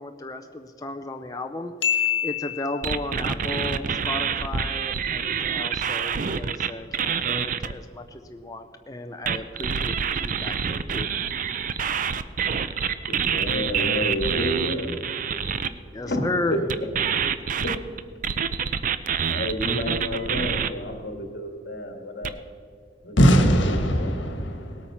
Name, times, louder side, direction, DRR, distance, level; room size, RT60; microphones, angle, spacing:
voice 1, 0.0-1.7 2.2-11.1 15.9-16.6, left 2 dB, 20° left, 0.5 m, -34 dB
voice 2, 1.8-2.6 23.2-24.8, left 1 dB, 85° left, 1.4 m, -21 dB
sound 1, 2.8-7.7 9.2-15.7 16.7-20.7 22.2-22.3, right 7 dB, 45° right, 0.5 m, -27 dB
voice 3, 13.1-15.0 16.1-16.6 17.6-17.8 19.3-22.4 23.0-24.1, left 1 dB, 60° left, 2.1 m, -30 dB
18.5 x 8.9 x 5.6 m
head